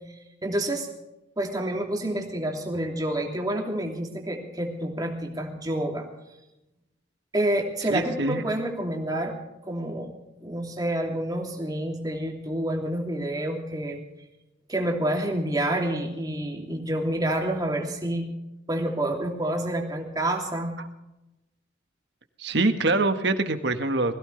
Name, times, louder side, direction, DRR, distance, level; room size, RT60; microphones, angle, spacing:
voice 1, 0.4-0.9 1.4-6.1 7.3-9.3 9.6-10.1 10.4-14.0 14.7-18.3 18.7-20.7, right 1 dB, 20° right, 0 dB, 2.9 m, -28 dB
voice 2, 7.9-8.4 20.8-20.9 22.4-24.1, right 2 dB, 60° right, 7 dB, 1.6 m, -24 dB
21.5 x 16.5 x 3.3 m, 0.93 s
head